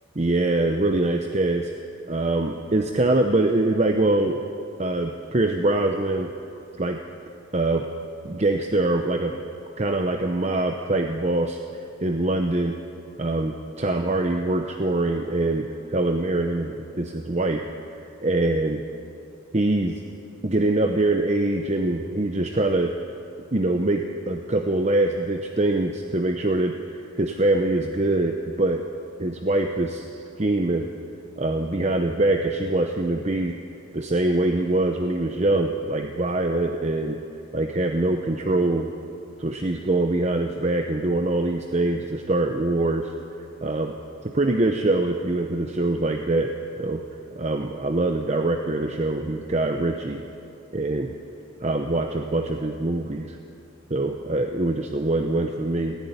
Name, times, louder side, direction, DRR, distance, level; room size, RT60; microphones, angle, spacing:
voice 1, 0.2-1.7 2.1-4.4 4.8-6.3 6.7-7.0 7.5-7.8 8.2-9.4 9.8-11.6 12.0-12.8 13.2-17.7 18.2-18.8 19.5-20.0 20.4-22.9 23.5-28.9 29.2-30.0 30.4-30.9 31.4-33.6 33.9-37.2 37.5-38.9 39.4-43.1 43.6-44.0 44.2-47.0 47.3-50.2 50.7-51.1 51.6-53.4 53.9-56.0, right 2 dB, 35° right, 4 dB, 0.8 m, -24 dB
18.5 x 14.5 x 9.7 m, 2.6 s
head